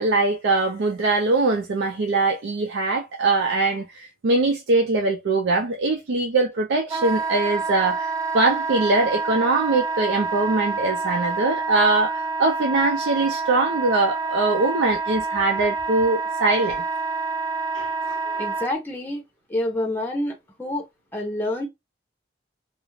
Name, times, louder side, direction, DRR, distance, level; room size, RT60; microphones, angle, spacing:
voice 1, 0.0-16.8 17.7-18.4, right 3 dB, 85° right, 0.4 m, -22 dB
Wind instrument woodwind instrument, 6.9-18.7, right 4 dB, 20° right, 0.4 m, -27 dB
voice 2, 18.4-19.2 19.5-20.8 21.1-21.7, left 1 dB, 10° left, 0.7 m, -27 dB
2.4 x 2.0 x 2.9 m
head